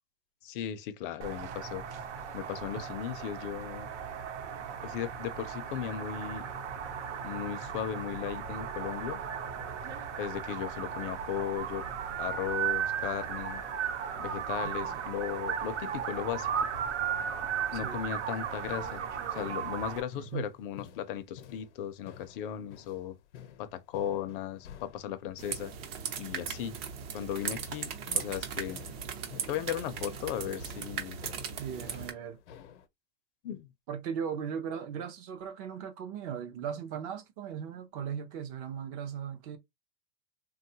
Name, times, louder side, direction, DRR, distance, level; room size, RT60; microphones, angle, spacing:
voice 1, 0.4-1.8 2.3-3.9 4.8-6.5 7.2-9.2 10.2-11.9 12.2-13.6 14.2-16.7 17.7-19.0 19.3-23.2 23.6-25.7 26.2-26.8 27.1-28.8 29.5-31.2 33.4-33.7, left 10 dB, 50° left, 0.5 m, -36 dB
sound 1, 1.2-20.0, right 8 dB, 90° right, 1.0 m, -36 dB
voice 2, 14.6-15.0 17.7-18.0 20.1-20.5 31.6-32.4 33.9-39.6, right 7 dB, 35° right, 0.5 m, -38 dB
sound 2, 18.2-32.9, left 9 dB, 85° left, 0.7 m, -52 dB
sound 3, 25.4-32.1, right 7 dB, 60° right, 0.9 m, -38 dB
3.4 x 2.3 x 2.7 m
supercardioid pair, 155°, 34 cm